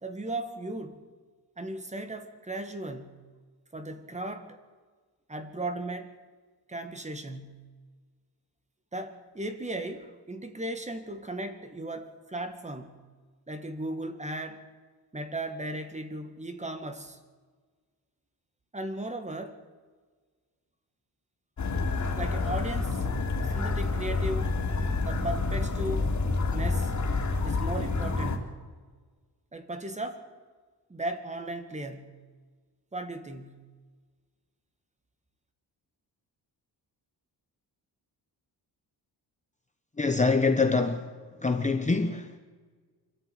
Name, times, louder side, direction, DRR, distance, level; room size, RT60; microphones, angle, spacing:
voice 1, 0.0-1.0 1.6-3.2 3.7-4.6 5.3-6.1 6.7-7.7 8.9-13.0 13.5-14.6 15.1-17.2 18.7-19.6 22.2-23.1 23.5-24.6 25.1-26.1 26.5-26.9 27.4-28.6 29.5-30.2 30.9-32.2 32.9-33.7, right 1 dB, 15° right, 1.8 m, -36 dB
sound 1, 21.6-28.4, left 3 dB, 45° left, 3.0 m, -28 dB
voice 2, 40.0-41.1 41.4-42.4, left 4 dB, 20° left, 0.9 m, -25 dB
26.0 x 13.0 x 9.4 m
wide cardioid pair, 170°, 40 cm